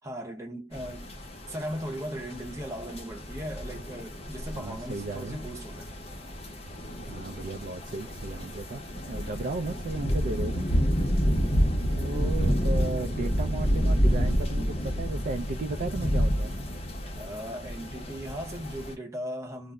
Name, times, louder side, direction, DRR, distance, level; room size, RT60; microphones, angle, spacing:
voice 1, 0.0-1.1 1.5-6.0 17.2-19.7, equal, 15° right, 0.7 m, -38 dB
sound 1, 0.7-18.9, equal, 35° left, 0.6 m, -29 dB
voice 2, 4.5-5.4 7.0-10.7 11.0-11.3 11.9-16.6, right 3 dB, 45° right, 0.3 m, -35 dB
2.1 x 2.0 x 3.5 m
head